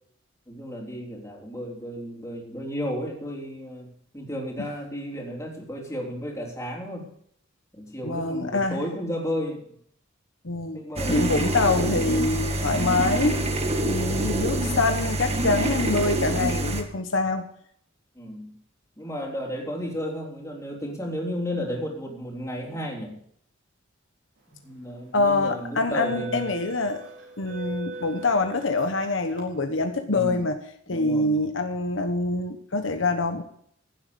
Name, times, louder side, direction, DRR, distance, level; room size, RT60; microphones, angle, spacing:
voice 1, 0.5-3.9 4.1-7.1 7.7-9.7 10.7-11.3 18.2-18.6 19.0-23.2 24.5-26.5 30.1-30.4 30.9-31.4, equal, 15° left, -1 dB, 3.5 m, -33 dB
voice 2, 8.0-8.8 10.4-10.8 11.1-13.4 13.8-17.5 25.1-27.0 27.4-30.6 30.9-33.4, left 3 dB, 70° left, 6 dB, 1.1 m, -25 dB
sound 1, 11.0-16.8, right 1 dB, 35° right, 1.7 m, -26 dB
sound 2, 24.6-24.9 25.6-29.4, right 2 dB, 65° right, 4.7 m, -39 dB
15.5 x 7.8 x 6.9 m, 0.66 s
head